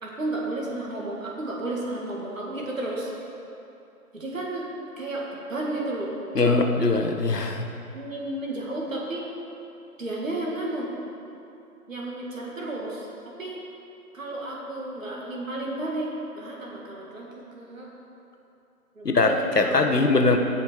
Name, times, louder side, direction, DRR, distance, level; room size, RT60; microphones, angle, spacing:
voice 1, 0.0-3.1 4.1-4.7 5.0-6.1 6.4-6.9 7.9-9.2 10.0-10.9 11.9-13.1 13.4-13.6 14.1-16.1 16.4-17.3 17.5-17.9 19.0-20.4, right 2 dB, 55° right, -3 dB, 2.3 m, -32 dB
voice 2, 6.3-7.7 19.0-20.4, left 3 dB, 80° left, 4 dB, 1.2 m, -21 dB
16.5 x 5.7 x 4.6 m, 2.8 s
figure-of-eight pair, 150°, 47 cm